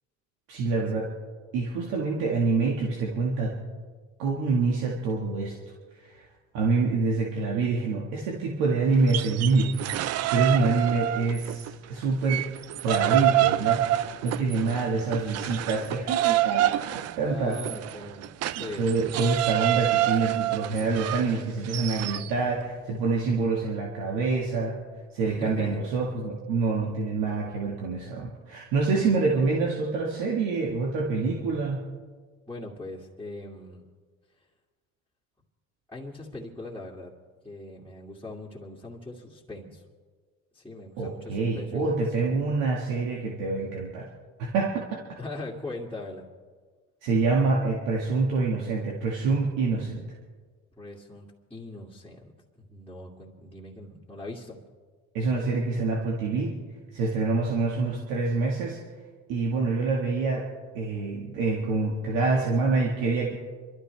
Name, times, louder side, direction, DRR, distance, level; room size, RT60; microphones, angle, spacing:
voice 1, 0.5-1.1 1.5-3.6 4.2-5.6 6.0-6.3 6.5-12.5 12.8-13.8 14.2-17.6 18.6-24.8 25.1-31.8 41.0-44.1 44.4-45.0 47.0-50.0 55.1-56.5 56.9-58.8 59.3-60.5 60.7-63.3, right 3 dB, 90° right, -2 dB, 1.9 m, -26 dB
sound 1, 9.0-11.7 12.0-22.3, right 14 dB, 55° right, 0.5 m, -27 dB
voice 2, 14.6-15.1 17.3-18.9 20.7-21.0 25.2-25.8 27.2-27.4 29.0-29.2 32.5-33.8 35.9-37.1 37.4-39.8 40.5-42.4 45.2-46.3 50.8-54.6, left 2 dB, 5° left, -7 dB, 2.4 m, -41 dB
27.0 x 13.0 x 3.4 m, 1.5 s
supercardioid pair, 90°, 30 cm